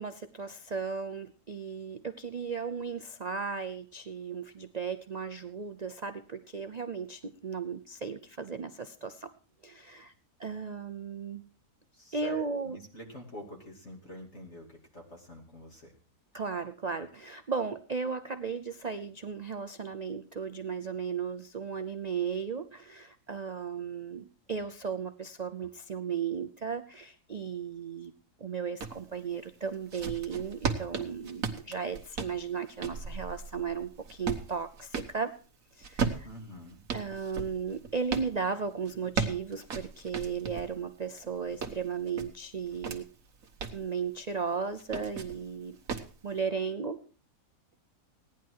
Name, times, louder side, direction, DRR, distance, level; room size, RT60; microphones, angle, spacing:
voice 1, 0.0-9.3 9.6-10.1 10.4-11.4 12.1-12.8 16.3-28.1 28.4-35.3 35.7-36.3 36.9-43.1 43.7-45.8 46.2-47.0, right 6 dB, 80° right, 9 dB, 0.3 m, -35 dB
voice 2, 11.9-15.9 36.2-36.8, left 1 dB, 40° left, 1 dB, 2.9 m, -47 dB
sound 1, 28.8-29.0 29.6-35.2 35.8-38.3 38.9-40.7 41.2-43.0 43.4-43.8 44.8-45.4 45.9-46.1, right 5 dB, 60° right, 1.7 m, -35 dB
16.5 x 10.5 x 4.7 m, 0.40 s
omnidirectional pair, 1.7 m